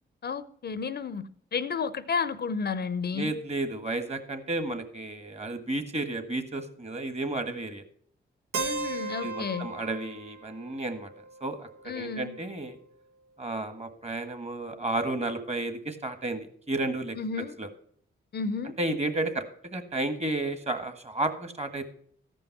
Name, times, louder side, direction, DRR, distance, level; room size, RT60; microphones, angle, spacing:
voice 1, 0.2-3.3 8.5-9.7 11.9-12.4 17.2-17.6 18.3-18.7, left 5 dB, 50° left, 0.6 m, -32 dB
voice 2, 3.1-7.8 9.2-11.1 11.4-11.7 11.9-12.8 13.4-17.2 17.6-17.7 18.8-21.8, right 2 dB, 30° right, 1.5 m, -32 dB
Keyboard (musical), 8.5-12.4, right 4 dB, 85° right, 0.9 m, -37 dB
13.5 x 5.4 x 5.8 m
cardioid pair, 55°, 21 cm